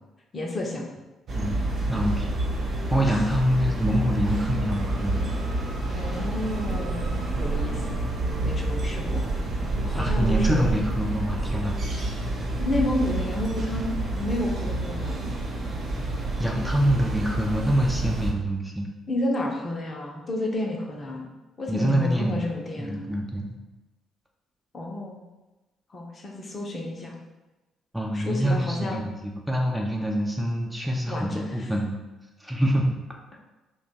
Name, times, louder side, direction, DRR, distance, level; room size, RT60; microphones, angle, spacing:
voice 1, 0.3-0.9 3.0-3.3 5.9-8.0 8.4-9.3 9.8-10.7 12.6-15.3 19.1-21.3 21.6-23.1 24.7-25.2 25.9-27.2 28.1-29.0 31.1-31.7, left 1 dB, 35° left, -1 dB, 0.7 m, -31 dB
sound 1, 1.3-18.3, right 2 dB, 45° right, 0.6 m, -28 dB
voice 2, 1.9-2.3 2.9-5.2 9.9-11.8 16.4-18.9 21.7-22.5 22.8-23.5 27.9-32.0 32.4-33.0, equal, 5° right, 0 dB, 0.5 m, -25 dB
2.8 x 2.3 x 4.1 m, 1.1 s
figure-of-eight pair, 45°, 0 cm